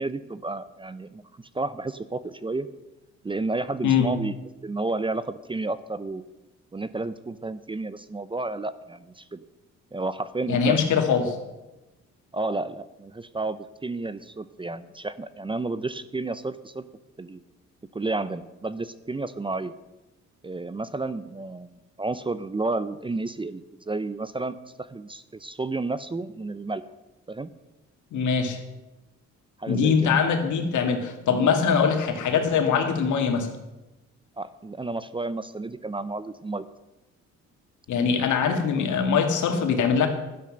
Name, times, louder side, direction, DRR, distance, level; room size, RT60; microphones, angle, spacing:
voice 1, 0.0-2.7 3.2-4.4 4.6-6.2 6.7-9.4 9.9-10.8 12.3-16.8 17.2-17.4 17.9-19.7 20.4-26.8 27.3-27.5 29.6-30.1 34.4-36.6 38.5-38.9, right 3 dB, 15° right, 14 dB, 0.6 m, -31 dB
voice 2, 10.5-11.3 28.1-28.6 29.7-33.5 37.9-40.1, left 6 dB, 75° left, 5 dB, 2.3 m, -22 dB
12.0 x 9.9 x 6.5 m, 1.0 s
cardioid pair, 90°, 30 cm